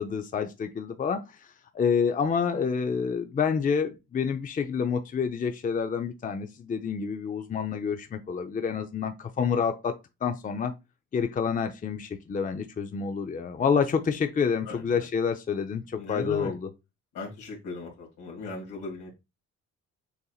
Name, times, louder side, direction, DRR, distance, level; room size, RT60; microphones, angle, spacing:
voice 1, 0.0-9.9 10.2-10.7 11.1-16.7, left 6 dB, 25° left, 0.5 m, -28 dB
voice 2, 14.7-15.0 15.9-16.5 17.1-19.1, left 3 dB, 80° left, 2.0 m, -37 dB
6.6 x 2.8 x 2.4 m
cardioid pair, 90°, 30 cm